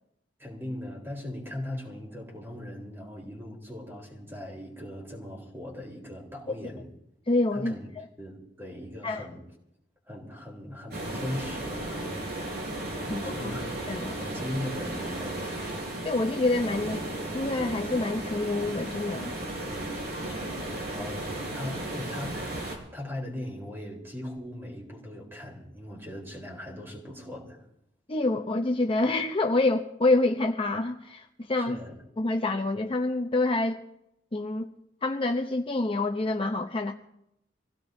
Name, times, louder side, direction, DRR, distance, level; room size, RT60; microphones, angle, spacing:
voice 1, 0.4-6.8 7.5-7.9 8.2-9.4 10.1-13.7 14.0-15.5 19.7-27.6 31.7-31.9, left 1 dB, 10° right, -1 dB, 3.8 m, -39 dB
voice 2, 7.3-7.7 9.0-9.2 13.1-13.5 13.9-14.2 16.0-19.3 28.1-31.8 32.2-33.8 34.3-34.7 35.0-36.9, left 2 dB, 30° left, 4 dB, 0.7 m, -27 dB
sound 1, 10.9-22.8, right 1 dB, 60° right, 4.6 m, -35 dB
26.0 x 16.5 x 2.7 m, 0.79 s
head